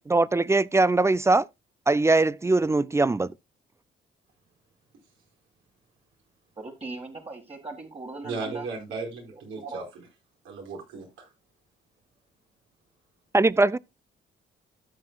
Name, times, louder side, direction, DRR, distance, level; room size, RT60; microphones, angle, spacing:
voice 1, 0.1-1.5 1.9-3.3 13.3-13.8, right 2 dB, 15° right, 0.4 m, -21 dB
voice 2, 6.6-8.7 9.3-9.8, right 3 dB, 30° right, 1.9 m, -39 dB
voice 3, 8.2-9.8 10.4-11.3, right 4 dB, 85° right, 4.8 m, -36 dB
13.5 x 7.7 x 2.3 m
cardioid pair, 90°, 20 cm